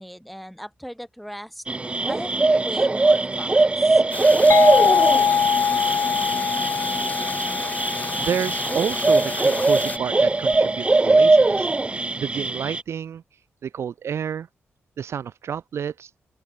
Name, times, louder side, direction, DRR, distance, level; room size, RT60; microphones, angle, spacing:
voice 1, 0.0-1.6 2.1-4.0, equal, ahead, 2.5 m, -38 dB
sound 1, 1.7-12.8, right 2 dB, 25° right, 0.7 m, -21 dB
sound 2, 4.1-10.0, left 3 dB, 35° left, 1.8 m, -33 dB
sound 3, 4.5-10.0, left 7 dB, 65° left, 0.9 m, -23 dB
voice 2, 8.2-11.7 12.2-13.2 13.6-14.5 15.0-16.1, right 8 dB, 70° right, 0.5 m, -29 dB
open air
cardioid pair, 60°, 5 cm